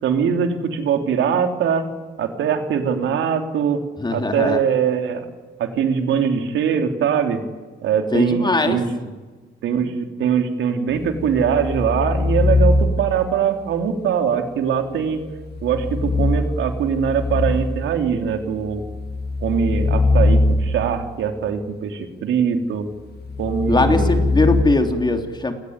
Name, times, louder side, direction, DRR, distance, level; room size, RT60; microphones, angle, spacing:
voice 1, 0.0-1.8 2.2-3.8 4.1-5.3 5.6-7.4 7.8-8.9 9.6-15.2 15.6-18.8 19.4-22.9 23.4-24.2, right 7 dB, 80° right, 5 dB, 3.3 m, -22 dB
voice 2, 4.0-4.6 8.1-8.8 23.7-25.5, left 2 dB, 20° left, 5 dB, 3.4 m, -20 dB
sound 1, 11.0-13.3 15.4-18.0 18.6-21.1 23.1-24.6, left 2 dB, 55° left, 2.5 m, -21 dB
28.0 x 20.0 x 9.6 m, 1.3 s
cardioid pair, 90°, 20 cm